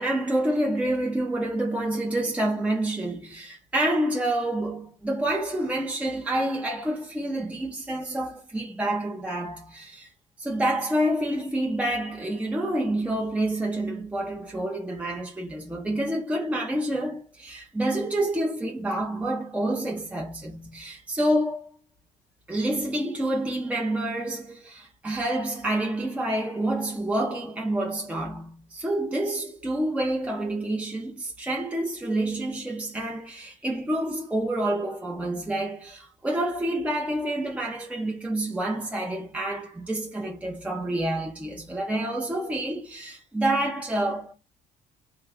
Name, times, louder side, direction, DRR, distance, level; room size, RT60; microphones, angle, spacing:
voice 1, 0.0-10.1 10.4-21.7 22.5-44.3, right 1 dB, 10° right, 0.6 m, -28 dB
3.0 x 2.3 x 3.5 m
cardioid pair, 110°, 17 cm